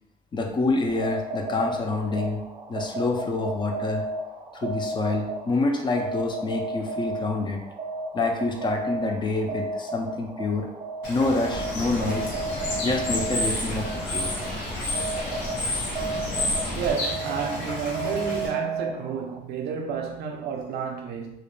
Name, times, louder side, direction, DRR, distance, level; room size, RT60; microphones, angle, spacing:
voice 1, 0.3-2.4 2.7-4.0 4.5-7.6 8.1-10.7 11.1-12.3 12.8-14.3, left 3 dB, 25° left, 0.4 m, -27 dB
sound 1, 0.9-19.4, right 2 dB, 30° right, 0.5 m, -34 dB
Bird / Water, 11.0-18.5, left 1 dB, 85° left, 1.0 m, -31 dB
sound 2, 11.5-16.9, left 1 dB, 60° left, 0.7 m, -35 dB
voice 2, 16.8-21.4, right 6 dB, 75° right, 0.5 m, -31 dB
2.3 x 2.1 x 3.1 m
cardioid pair, 110°, 17 cm